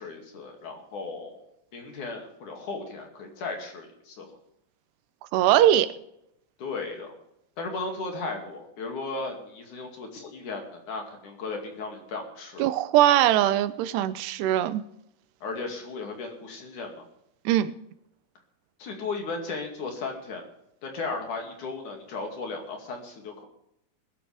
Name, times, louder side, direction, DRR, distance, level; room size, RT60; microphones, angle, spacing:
voice 1, 0.0-1.4 1.7-4.3 6.6-7.1 7.6-12.7 15.4-17.0 18.8-20.4 20.8-23.5, left 3 dB, 55° left, 2 dB, 3.6 m, -35 dB
voice 2, 5.3-5.9 12.6-14.8 17.5-17.7, right 12 dB, 90° right, 14 dB, 2.9 m, -21 dB
21.5 x 11.5 x 3.5 m, 0.78 s
omnidirectional pair, 4.7 m